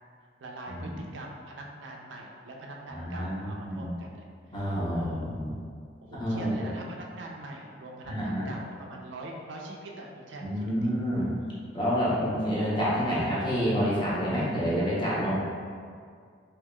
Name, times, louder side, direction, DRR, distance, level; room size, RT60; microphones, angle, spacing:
voice 1, 0.4-4.6 4.9-5.4 6.0-10.9 12.1-12.4, right 2 dB, 80° right, 0 dB, 0.4 m, -43 dB
voice 2, 2.9-3.9 4.5-5.6 6.2-6.7 8.0-8.5 10.4-11.4 11.7-15.3, equal, 25° left, -8 dB, 0.7 m, -28 dB
3.5 x 2.8 x 2.2 m, 2.1 s
head